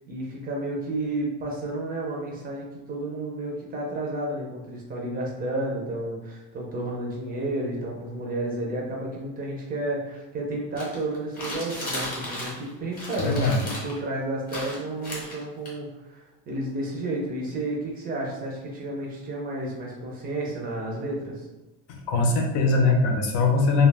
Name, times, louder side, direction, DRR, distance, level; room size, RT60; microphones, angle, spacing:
voice 1, 0.1-13.5 13.8-21.5, right 1 dB, 25° right, -2 dB, 0.4 m, -31 dB
sound 1, 10.8-12.7 12.9-14.0 14.5-15.7, left 1 dB, 25° left, 0.7 m, -35 dB
voice 2, 13.2-13.6 21.9-23.9, left 3 dB, 80° left, 2 dB, 0.7 m, -21 dB
2.2 x 2.2 x 3.2 m, 1.0 s
cardioid pair, 175°, 38 cm